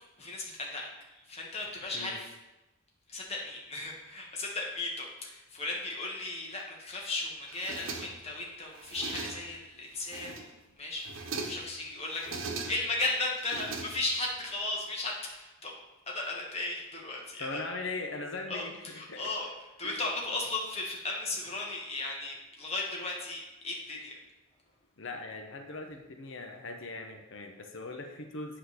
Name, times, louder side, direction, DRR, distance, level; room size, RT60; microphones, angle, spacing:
voice 1, 0.2-2.3 3.1-12.2 12.7-15.7 16.1-17.6 18.5-19.5 19.8-24.2, left 2 dB, 30° left, -2 dB, 1.4 m, -36 dB
sound 1, 7.5-8.4 8.7-9.6 10.0-10.6 11.0-11.7 12.1-13.0 13.4-14.3, right 3 dB, 75° right, 1.0 m, -40 dB
voice 2, 17.4-19.3 19.8-20.0 25.0-28.6, left 3 dB, 65° left, 5 dB, 0.8 m, -40 dB
8.0 x 3.9 x 6.4 m, 1.0 s
head